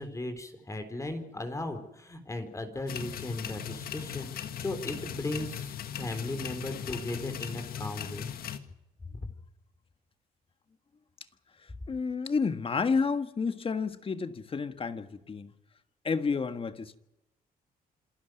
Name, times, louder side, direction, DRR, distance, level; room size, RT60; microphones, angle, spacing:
voice 1, 0.0-8.3 9.2-9.3, left 2 dB, 20° left, 4.0 m, -37 dB
sound 1, 2.9-8.6, left 9 dB, 70° left, 1.8 m, -38 dB
voice 2, 11.9-15.5 16.0-17.0, left 5 dB, 35° left, 1.7 m, -30 dB
27.0 x 13.0 x 9.3 m
cardioid pair, 95°, 16 cm